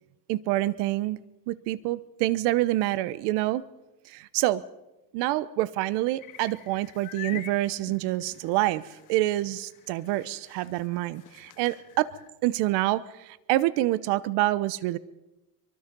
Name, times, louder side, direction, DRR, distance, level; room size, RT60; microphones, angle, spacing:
voice 1, 0.3-1.2 1.5-3.6 4.0-4.6 5.1-12.1 12.4-15.0, right 16 dB, 75° right, 17 dB, 1.1 m, -27 dB
sound 1, 6.2-12.3, left 11 dB, 50° left, 2.0 m, -46 dB
24.0 x 22.5 x 5.4 m, 0.99 s
cardioid pair, 155°, 40 cm